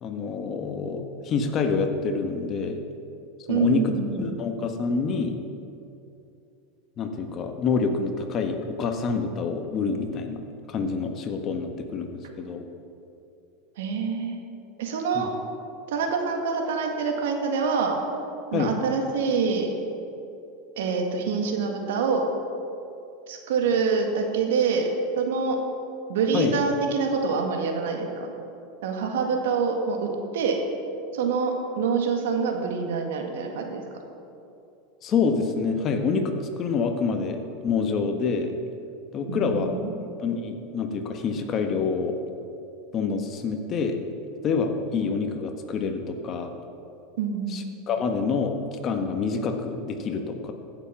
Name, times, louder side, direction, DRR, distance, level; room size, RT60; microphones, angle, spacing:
voice 1, 0.0-2.8 3.5-5.4 7.0-10.4 10.7-12.6 15.1-15.3 18.5-18.8 26.3-26.6 35.0-38.5 39.1-39.8 40.2-42.2 42.9-44.0 44.4-46.5 47.5-50.5, left 5 dB, 40° left, 5 dB, 1.4 m, -27 dB
voice 2, 3.5-4.4 13.8-14.4 14.8-15.3 15.9-18.0 18.5-19.7 20.8-22.3 23.3-24.9 25.2-25.6 26.1-28.3 28.8-30.6 31.1-33.8 39.3-39.9 47.2-47.6, right 5 dB, 80° right, 3 dB, 1.9 m, -26 dB
15.0 x 7.2 x 5.9 m, 2.7 s
hypercardioid pair, 110°, 0 cm